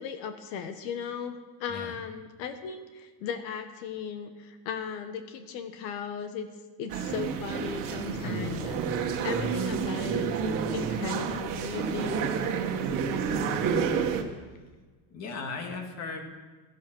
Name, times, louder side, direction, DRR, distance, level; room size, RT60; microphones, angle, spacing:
voice 1, 0.0-6.5 6.8-12.6, left 7 dB, 85° left, 8 dB, 1.6 m, -37 dB
sound 1, 6.9-14.2, right 6 dB, 40° right, 1.8 m, -29 dB
voice 2, 8.1-8.4 15.1-16.2, left 4 dB, 30° left, 4 dB, 2.2 m, -37 dB
16.0 x 14.0 x 6.3 m, 1.3 s
cardioid pair, 175°, 49 cm